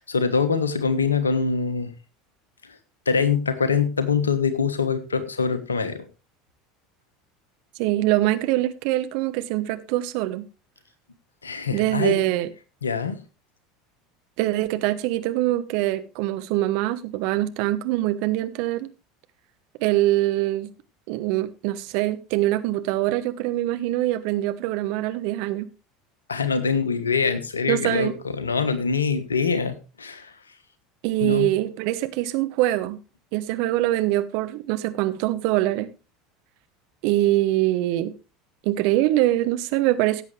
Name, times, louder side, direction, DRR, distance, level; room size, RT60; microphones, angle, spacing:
voice 1, 0.0-1.9 3.1-6.0 11.4-12.2 12.8-13.2 26.3-30.3 31.2-31.5, left 5 dB, 85° left, 1.4 m, -24 dB
voice 2, 7.8-10.5 11.7-12.5 14.4-18.9 19.8-20.7 21.1-25.7 27.7-28.1 31.0-33.0 33.3-35.9 37.0-38.1 38.6-40.2, right 15 dB, 60° right, 1.1 m, -23 dB
16.0 x 8.1 x 3.3 m
figure-of-eight pair, 75°, 0 cm